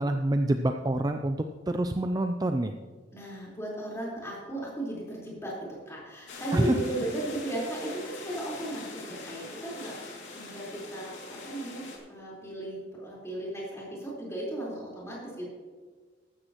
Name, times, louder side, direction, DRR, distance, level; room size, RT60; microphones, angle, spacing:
voice 1, 0.0-1.4 1.7-2.7 6.5-6.8, right 1 dB, 20° right, 6 dB, 0.4 m, -26 dB
voice 2, 3.1-11.8 12.1-15.5, right 1 dB, 15° left, -5 dB, 4.2 m, -36 dB
sound 1, 6.3-12.0, left 3 dB, 75° left, 2.5 m, -43 dB
14.5 x 12.5 x 3.0 m, 1.5 s
head